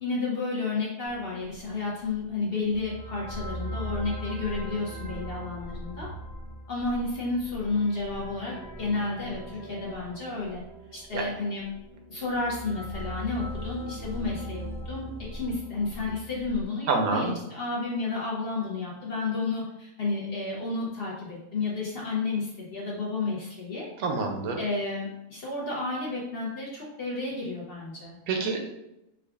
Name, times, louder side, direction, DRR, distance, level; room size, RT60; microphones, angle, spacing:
voice 1, 0.0-6.1 6.7-10.6 10.9-11.6 12.1-23.9 24.6-28.2, left 3 dB, 55° left, -4 dB, 0.7 m, -31 dB
sound 1, 1.0-16.6, equal, 35° left, 1.6 m, -40 dB
voice 2, 16.9-17.4 24.0-24.6 28.3-28.7, right 3 dB, 85° right, 3 dB, 1.1 m, -27 dB
4.7 x 2.3 x 2.3 m, 0.88 s
omnidirectional pair, 1.6 m